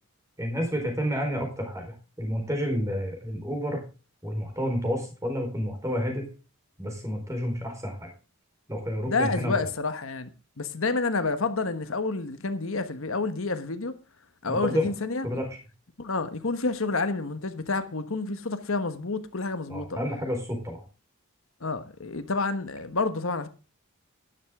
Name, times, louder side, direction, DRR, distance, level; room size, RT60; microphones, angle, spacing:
voice 1, 0.4-3.8 4.2-6.3 6.8-8.1 8.7-9.7 14.5-14.9 15.2-15.6 19.7-20.9, equal, 15° right, 4.1 m, -30 dB
voice 2, 9.1-10.3 10.6-13.9 14.4-15.2 16.0-20.0 21.6-23.5, left 3 dB, 70° left, 1.3 m, -29 dB
12.5 x 11.0 x 3.6 m
head